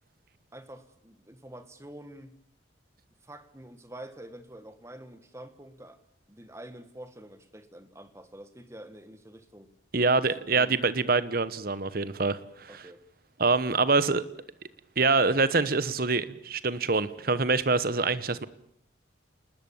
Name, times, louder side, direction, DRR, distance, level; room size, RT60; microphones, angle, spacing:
voice 1, 0.5-2.3 3.2-6.0 6.3-9.7 10.4-10.8 12.7-13.1, right 1 dB, 15° right, 1.6 m, -47 dB
voice 2, 9.9-12.8 13.4-14.2 15.0-18.5, right 3 dB, 50° right, 1.1 m, -25 dB
29.0 x 20.0 x 7.2 m
head